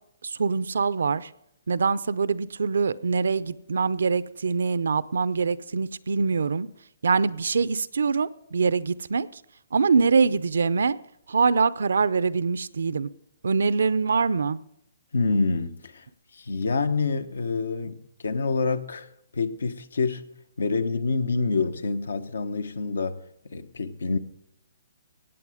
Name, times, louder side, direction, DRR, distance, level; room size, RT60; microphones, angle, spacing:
voice 1, 0.2-1.3 1.7-6.7 7.0-9.3 9.7-11.0 11.3-13.1 13.4-14.6, right 5 dB, 80° right, 0.5 m, -24 dB
voice 2, 15.1-16.1 16.3-19.1 19.3-20.2 20.6-23.2 23.5-24.2, left 4 dB, 85° left, 1.1 m, -27 dB
16.5 x 8.5 x 5.0 m
hypercardioid pair, 150°, 0 cm